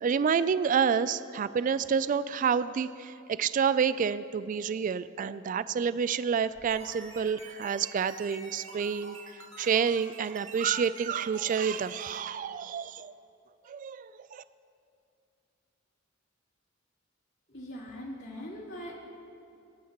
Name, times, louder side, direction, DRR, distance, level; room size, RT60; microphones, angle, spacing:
voice 1, 0.0-13.1 13.7-14.4, right 6 dB, 40° right, 15 dB, 0.3 m, -29 dB
sound 1, 6.5-12.2, right 2 dB, 70° right, 2.3 m, -47 dB
voice 2, 17.5-18.9, equal, 65° left, -5 dB, 2.7 m, -41 dB
27.0 x 9.3 x 2.9 m, 2.6 s
head